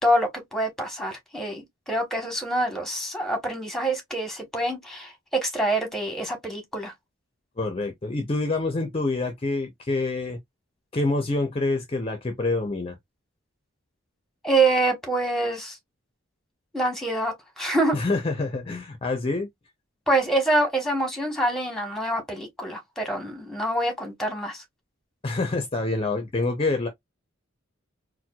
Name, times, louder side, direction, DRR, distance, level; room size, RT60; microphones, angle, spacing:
voice 1, 0.0-6.9 14.4-15.8 16.7-18.0 20.1-24.6, right 2 dB, ahead, 1.1 m, -26 dB
voice 2, 7.6-10.4 10.9-13.0 17.9-19.5 25.2-26.9, left 2 dB, 30° left, 0.6 m, -26 dB
4.3 x 2.2 x 2.2 m
head